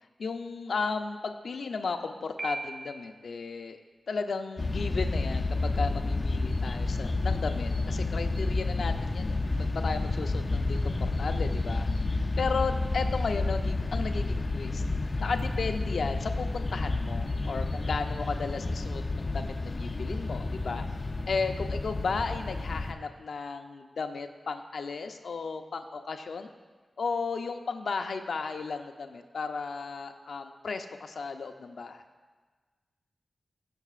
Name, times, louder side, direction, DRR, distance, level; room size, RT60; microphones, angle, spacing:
voice 1, 0.2-3.8 4.1-14.8 15.2-20.9 21.3-26.5 27.0-32.0, left 4 dB, 80° left, 6 dB, 0.7 m, -34 dB
Piano, 2.4-3.3, right 2 dB, 50° right, 0.7 m, -38 dB
sound 1, 4.6-22.9, left 2 dB, 40° left, 0.6 m, -30 dB
21.0 x 7.1 x 2.5 m, 1.4 s
wide cardioid pair, 110°, 0 cm